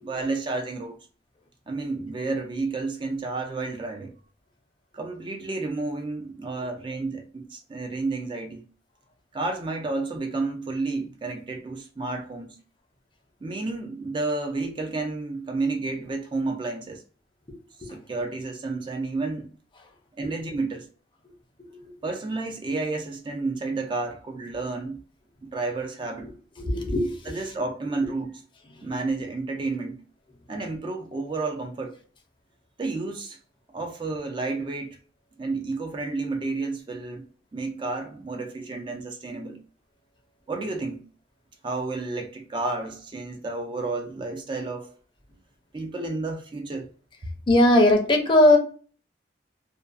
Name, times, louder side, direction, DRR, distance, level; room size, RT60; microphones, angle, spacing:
voice 1, 0.0-1.0 1.7-4.2 4.9-8.7 9.3-12.6 13.4-17.0 17.8-19.5 20.2-20.9 22.0-25.0 25.4-26.3 27.3-28.4 28.8-30.0 30.5-32.0 32.8-33.4 33.7-35.0 35.4-37.2 37.5-39.6 40.5-41.0 41.6-45.0 45.7-46.9, right 3 dB, 25° right, 0.3 m, -31 dB
voice 2, 26.6-27.4 28.7-28.8 47.5-48.6, left 1 dB, 25° left, 0.5 m, -20 dB
2.5 x 2.3 x 2.3 m
head